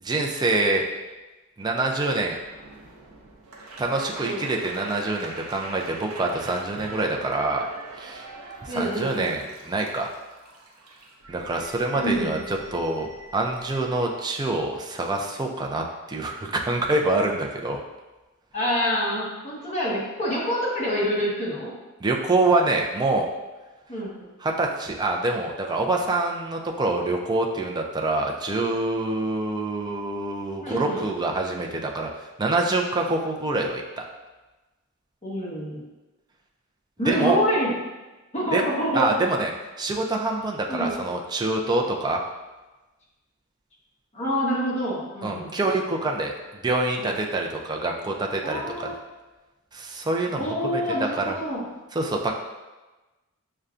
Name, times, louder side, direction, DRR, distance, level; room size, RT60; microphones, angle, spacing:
voice 1, 0.0-0.8 1.6-2.4 3.8-7.7 8.0-8.3 8.6-10.1 11.3-17.8 22.0-23.3 24.4-32.1 32.4-34.1 37.1-37.4 38.5-38.6 38.9-39.5 39.8-42.2 45.2-46.3 46.6-48.9 49.7-50.4 50.7-50.8 51.2-51.4 51.9-52.3, right 2 dB, 20° right, 1 dB, 0.4 m, -25 dB
sound 1, 2.1-14.0, right 2 dB, 80° right, 0.6 m, -43 dB
voice 2, 8.7-9.3 12.0-12.4 18.5-21.7 23.9-24.1 30.6-31.0 35.2-35.8 37.0-37.7 38.3-39.1 40.7-41.0 44.1-45.5 47.0-47.2 48.4-49.0 50.3-51.6, equal, 30° left, -6 dB, 1.1 m, -26 dB
6.5 x 2.2 x 2.5 m, 1.1 s
head